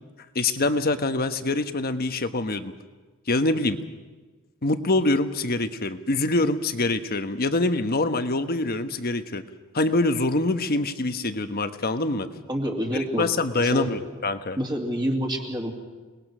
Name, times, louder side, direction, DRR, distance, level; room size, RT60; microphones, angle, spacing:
voice 1, 0.3-2.7 3.3-3.8 4.6-9.4 9.7-12.3 13.2-14.6, left 2 dB, 45° left, 9 dB, 1.2 m, -25 dB
voice 2, 12.5-13.3 13.6-13.9 14.6-15.7, equal, 20° right, 0 dB, 2.5 m, -27 dB
28.5 x 20.0 x 6.2 m, 1.3 s
head